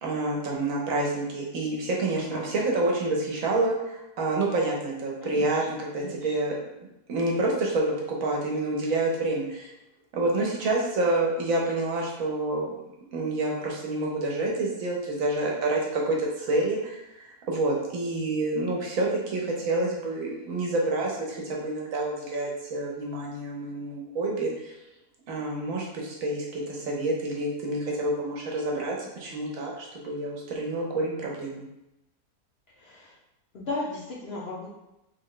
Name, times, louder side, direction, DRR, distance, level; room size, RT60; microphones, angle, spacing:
voice 1, 0.0-6.6 7.1-9.7 10.1-12.7 13.1-24.7 25.3-31.6, right 2 dB, 65° right, -2 dB, 1.1 m, -28 dB
voice 2, 5.2-5.7 5.9-6.3 32.8-33.1 33.5-34.7, left 2 dB, 50° left, -6 dB, 0.8 m, -36 dB
3.6 x 2.1 x 3.7 m, 0.89 s
omnidirectional pair, 1.6 m